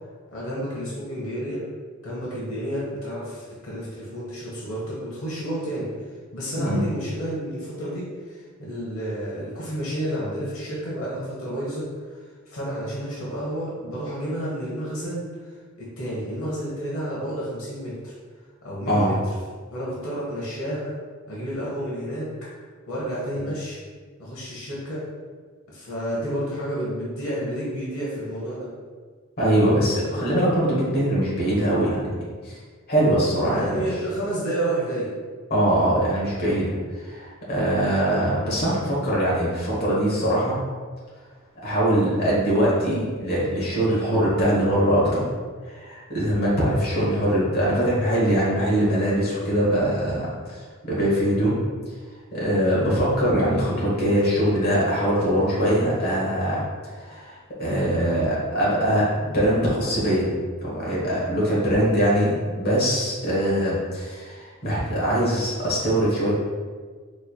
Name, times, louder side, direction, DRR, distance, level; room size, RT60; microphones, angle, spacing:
voice 1, 0.3-1.6 2.0-5.9 6.3-18.1 18.6-19.1 19.7-21.0 21.3-22.5 22.9-23.8 24.2-25.0 25.7-28.7 33.1-35.1, right 1 dB, 75° left, -6 dB, 0.9 m, -30 dB
voice 2, 29.4-32.2 32.4-32.6 32.9-33.8 35.5-40.5 41.6-45.2 45.6-50.6 50.8-51.6 52.3-56.6 57.0-60.3 60.6-66.3, equal, 50° left, -6 dB, 1.1 m, -22 dB
4.1 x 3.1 x 2.3 m, 1.5 s
head